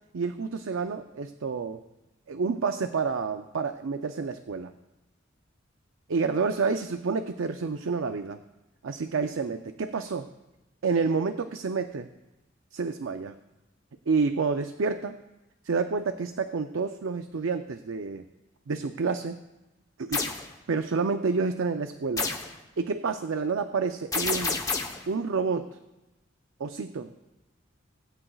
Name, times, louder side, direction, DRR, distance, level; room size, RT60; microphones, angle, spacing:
voice 1, 0.1-1.8 2.3-4.7 6.1-8.4 8.8-10.3 10.8-12.1 12.7-13.4 14.1-15.2 15.6-18.2 18.7-19.4 20.0-20.3 20.7-22.3 22.8-24.6 25.1-25.8 26.6-27.1, right 4 dB, 80° right, 8 dB, 0.5 m, -29 dB
sound 1, 20.1-20.4 22.2-22.5 24.1-25.0, left 4 dB, 15° left, 0.9 m, -29 dB
20.0 x 8.9 x 2.4 m, 1.0 s
head